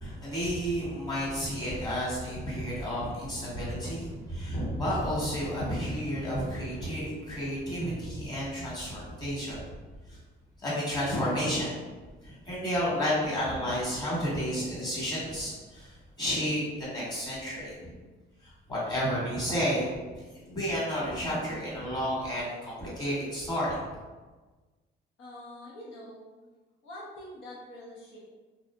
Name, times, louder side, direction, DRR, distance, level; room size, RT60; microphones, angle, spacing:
voice 1, 0.0-9.6 10.1-10.2 10.6-11.7 12.2-17.9 18.4-23.8, equal, 20° left, -8 dB, 1.4 m, -31 dB
voice 2, 25.2-26.3 26.8-28.2, left 1 dB, 75° left, -7 dB, 0.9 m, -45 dB
2.6 x 2.5 x 2.2 m, 1.3 s
cardioid pair, 90°, 20 cm